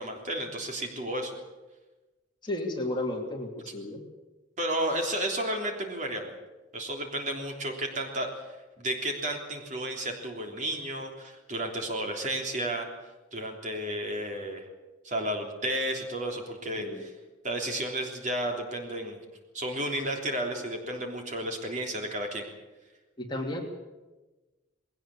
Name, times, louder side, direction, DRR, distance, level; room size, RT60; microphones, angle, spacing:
voice 1, 0.0-1.3 4.6-6.3 6.7-12.9 13.3-14.6 15.0-17.1 17.4-19.2 19.5-22.4, right 1 dB, 40° right, 2 dB, 3.4 m, -32 dB
voice 2, 2.4-4.0 16.6-17.0 23.2-23.6, left 1 dB, 25° left, 0 dB, 3.1 m, -33 dB
20.0 x 18.0 x 8.6 m, 1.2 s
head